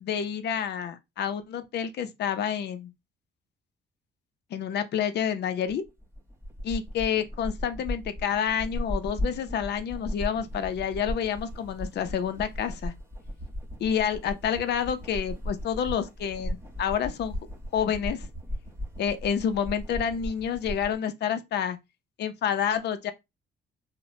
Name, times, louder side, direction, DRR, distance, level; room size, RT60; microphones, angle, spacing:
voice 1, 0.0-2.9 4.5-5.8 6.6-12.9 13.8-17.3 17.7-18.3 19.0-21.8 22.2-23.1, left 8 dB, 60° left, 0.5 m, -29 dB
sound 1, 5.7-20.9, equal, 10° right, 0.8 m, -36 dB
2.9 x 2.0 x 2.7 m
cardioid pair, 90°, 20 cm